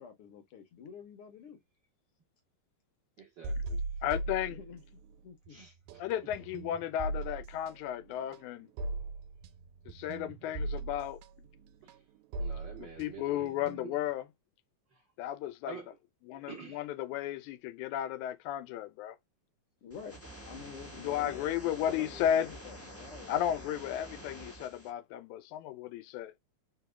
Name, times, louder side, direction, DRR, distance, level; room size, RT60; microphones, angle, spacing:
voice 1, 0.0-1.6 4.4-5.6 19.8-21.7 22.4-23.8 24.1-24.5, left 6 dB, 65° left, 1.5 m, -49 dB
voice 2, 3.2-3.8 5.5-5.7 11.8-11.9 12.4-13.5 14.9-15.0 15.7-15.9 16.5-16.8 21.1-21.3 21.6-22.2, right 6 dB, 65° right, 1.1 m, -48 dB
sound 1, 3.4-5.2 5.5-14.1, right 2 dB, 80° right, 1.8 m, -39 dB
voice 3, 4.0-4.6 6.0-8.7 9.9-11.2 12.8-14.3 15.2-15.8 16.2-19.2 21.0-22.6 23.3-26.3, left 11 dB, 90° left, 2.0 m, -34 dB
sound 2, 19.9-24.9, right 1 dB, 20° left, 0.3 m, -48 dB
4.7 x 2.9 x 2.2 m
omnidirectional pair, 3.3 m